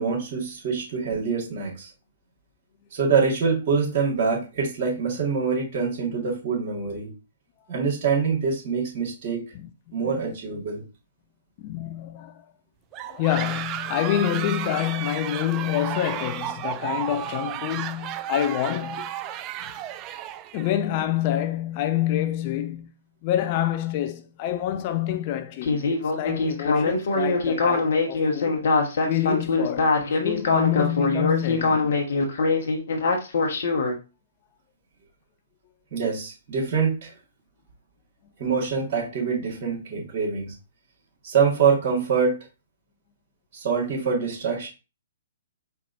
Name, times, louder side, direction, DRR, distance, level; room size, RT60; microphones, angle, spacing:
voice 1, 0.0-1.9 2.9-7.1 7.7-9.4 9.9-10.8 35.9-37.1 38.4-40.5 41.2-42.4 43.5-44.7, right 5 dB, 50° right, 2.2 m, -25 dB
voice 2, 11.6-12.5 13.0-19.1 19.6-19.8 20.5-22.9 23.2-28.6 29.0-32.0 33.7-33.8 38.2-38.3, left 12 dB, 40° left, 0.5 m, -27 dB
sound 1, 12.9-20.8, right 11 dB, 30° right, 0.3 m, -33 dB
Speech synthesizer, 25.6-33.9, left 3 dB, 60° left, 1.2 m, -23 dB
4.6 x 2.5 x 4.1 m
figure-of-eight pair, 125°, 0 cm